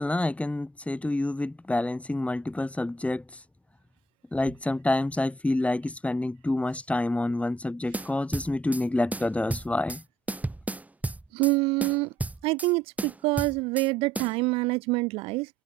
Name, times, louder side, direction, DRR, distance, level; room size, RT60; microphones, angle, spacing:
voice 1, 0.0-3.2 4.3-10.0, left 2 dB, 15° left, 2.3 m, -28 dB
sound 1, 7.9-8.8 9.1-10.0 10.3-11.5 11.8-12.7 13.0-13.9 14.1-14.3, right 2 dB, 15° right, 4.3 m, -33 dB
voice 2, 11.3-12.1 12.4-15.5, right 24 dB, 85° right, 0.4 m, -26 dB
supercardioid pair, 65°, 9 cm